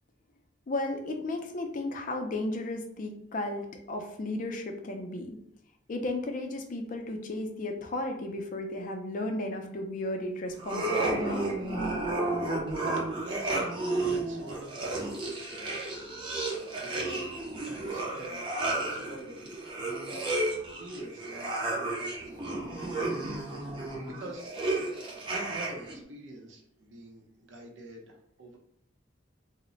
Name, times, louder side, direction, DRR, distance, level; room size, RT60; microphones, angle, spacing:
voice 1, 0.7-5.4 5.9-11.5, left 2 dB, 45° left, 3 dB, 0.4 m, -34 dB
sound 1, 10.6-26.0, right 2 dB, 25° right, 0.5 m, -32 dB
voice 2, 12.9-15.9 16.2-22.5 23.1-23.4 23.8-24.4 25.3-28.6, right 1 dB, 75° right, 0 dB, 0.6 m, -47 dB
2.1 x 2.0 x 3.7 m, 0.71 s
head